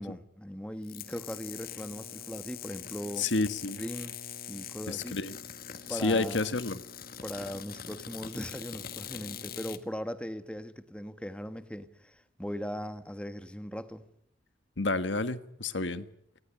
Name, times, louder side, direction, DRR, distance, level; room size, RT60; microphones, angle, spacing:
voice 1, 0.0-3.3 3.8-4.2 4.5-5.2 5.9-6.5 7.2-14.0, equal, 5° left, 1.3 m, -39 dB
sound 1, 0.8-9.8, left 8 dB, 50° left, 1.6 m, -43 dB
voice 2, 3.2-3.8 4.9-5.3 5.9-6.8 14.8-16.0, left 3 dB, 75° left, 1.5 m, -30 dB
29.5 x 19.5 x 9.9 m
head